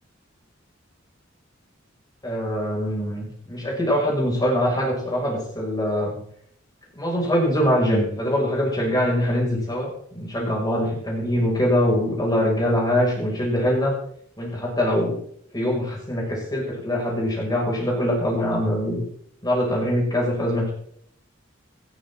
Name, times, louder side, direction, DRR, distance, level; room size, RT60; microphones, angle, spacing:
voice 1, 2.2-6.2 6.9-13.9 14.4-15.2 15.5-19.0 19.4-20.7, equal, 20° left, -2 dB, 6.2 m, -23 dB
18.5 x 12.0 x 3.9 m, 0.65 s
head